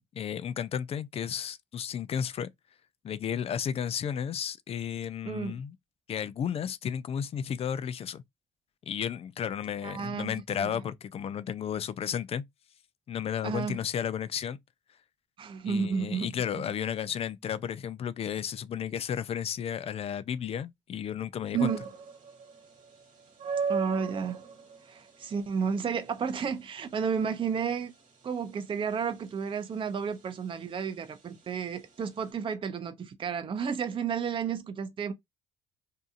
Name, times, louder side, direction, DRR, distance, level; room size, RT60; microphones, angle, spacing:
voice 1, 0.1-2.5 3.0-5.8 6.1-8.2 8.9-12.4 13.1-14.6 15.6-21.7, left 8 dB, 40° left, 0.4 m, -33 dB
voice 2, 5.3-5.6 9.8-10.3 10.6-10.7 13.4-13.8 15.4-16.4 21.5-21.8 23.7-24.4 24.9-27.9 28.2-35.1, right 6 dB, 35° right, 0.5 m, -32 dB
Strangely creepy industrial sound, 21.6-32.3, right 5 dB, 55° right, 1.4 m, -39 dB
2.6 x 2.4 x 2.4 m
supercardioid pair, 65°, 16 cm